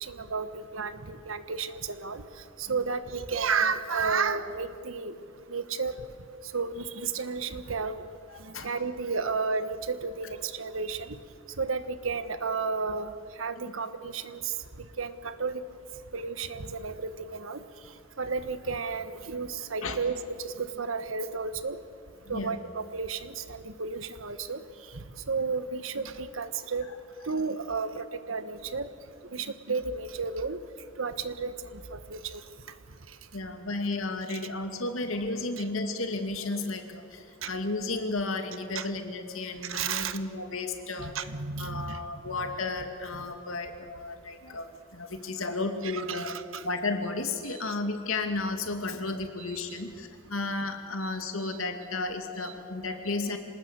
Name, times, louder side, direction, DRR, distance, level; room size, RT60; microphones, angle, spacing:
voice 1, 0.0-2.2 2.6-5.1 5.5-6.0 6.5-8.0 8.4-11.2 11.6-13.1 13.4-14.5 15.0-15.6 16.1-17.6 18.2-21.8 22.3-24.6 25.3-26.9 27.3-28.9 29.3-30.6 31.0-32.4 34.3-34.4 35.6-35.7 37.4-37.5 38.7-38.9 39.6-40.2 41.0-42.0 43.1-43.2 45.8-46.6 47.5-47.8 49.5-49.6 51.0-51.6 52.4-52.5, right 5 dB, 80° right, 11 dB, 1.4 m, -32 dB
voice 2, 8.3-8.7 19.8-20.0 22.3-22.6 33.3-41.1 41.6-46.3 46.6-53.4, left 3 dB, 85° left, 6 dB, 2.4 m, -33 dB
26.5 x 19.5 x 8.2 m, 2.3 s
head